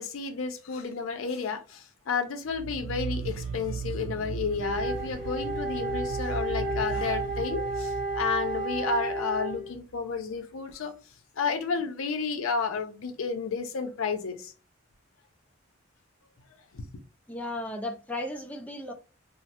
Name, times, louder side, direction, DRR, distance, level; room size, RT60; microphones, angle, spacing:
voice 1, 0.0-10.9 11.4-14.5 16.7-16.9, left 5 dB, 75° left, 0.5 m, -31 dB
sound 1, 2.5-9.8, right 5 dB, 80° right, 0.3 m, -37 dB
Wind instrument woodwind instrument, 4.5-9.7, right 2 dB, 40° left, 1.5 m, -32 dB
voice 2, 17.3-18.9, left 1 dB, 5° left, 0.3 m, -35 dB
3.1 x 2.0 x 2.8 m
head